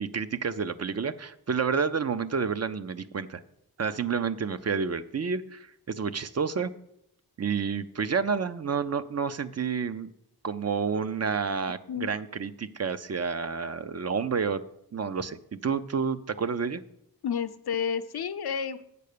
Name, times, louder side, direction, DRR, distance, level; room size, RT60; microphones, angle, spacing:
voice 1, 0.0-3.4 3.8-6.7 7.4-10.1 10.4-14.6 14.9-16.8, right 5 dB, 45° right, 12 dB, 0.5 m, -29 dB
voice 2, 17.2-18.8, left 7 dB, 80° left, 10 dB, 0.7 m, -30 dB
8.4 x 6.8 x 6.7 m, 0.77 s
wide cardioid pair, 125°, 37 cm